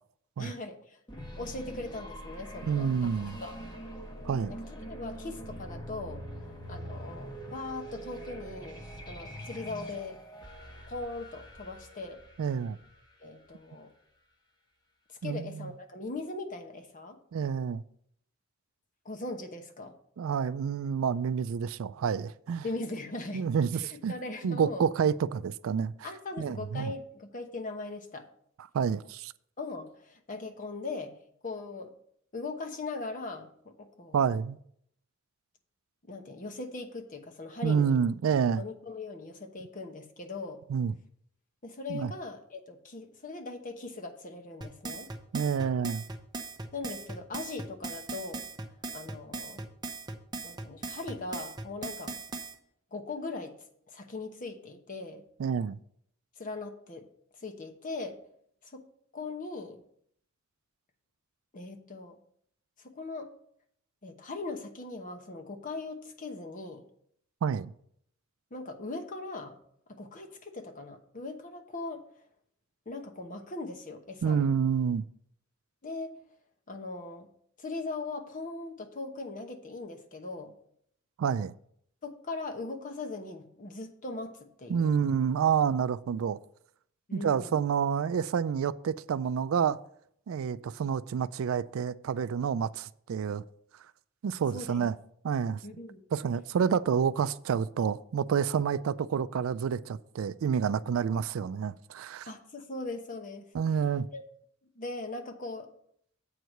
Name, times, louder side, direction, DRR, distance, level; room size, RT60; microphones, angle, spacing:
voice 1, 0.4-1.0 1.4-3.1 3.4-3.5 4.5-6.2 6.7-8.8 9.1-10.2 10.9-12.2 13.2-13.9 15.1-17.2 19.0-19.9 22.6-23.4 23.7-24.9 26.0-28.3 29.6-31.1 31.4-31.9 32.3-33.5 33.8-34.4 36.1-38.0 38.6-40.6 41.6-45.1 46.7-48.4 48.9-49.6 50.4-52.2 52.9-53.5 53.9-55.2 56.4-57.1 57.4-58.2 58.6-58.8 59.1-59.8 61.5-62.2 62.8-63.3 64.0-66.8 68.5-69.6 69.9-72.0 72.9-74.4 75.8-76.1 76.7-77.3 77.6-80.5 82.0-84.9 87.1-87.6 94.5-94.9 95.6-96.0 102.3-103.4 104.1-104.2 104.7-105.7, left 3 dB, 40° left, 1.0 m, -40 dB
sound 1, 1.1-13.8, right 1 dB, 20° left, 1.2 m, -44 dB
voice 2, 2.6-3.4 4.3-4.5 12.4-12.8 15.2-15.7 17.3-17.8 20.2-22.6 23.3-24.1 24.4-25.9 26.4-26.9 28.7-29.3 34.1-34.6 37.6-38.6 40.7-40.9 41.9-42.1 45.3-46.0 55.4-55.8 67.4-67.7 74.2-75.0 81.2-81.5 84.7-86.4 87.1-89.8 90.3-93.4 94.2-94.9 95.2-95.6 96.1-102.3 103.5-104.1, right 7 dB, 75° right, 0.4 m, -28 dB
sound 2, 44.6-52.5, right 3 dB, 20° right, 0.7 m, -39 dB
8.0 x 4.7 x 6.4 m
head